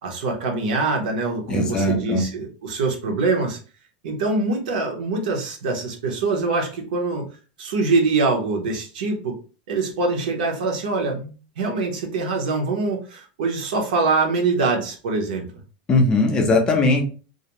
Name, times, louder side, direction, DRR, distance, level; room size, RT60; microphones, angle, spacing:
voice 1, 0.0-3.6 4.0-7.3 7.6-9.4 9.7-15.5, right 3 dB, 80° right, 2 dB, 0.8 m, -24 dB
voice 2, 1.5-2.2 15.9-17.0, left 2 dB, 15° left, 2 dB, 0.4 m, -19 dB
2.4 x 2.0 x 2.9 m, 0.36 s
supercardioid pair, 175°, 5 cm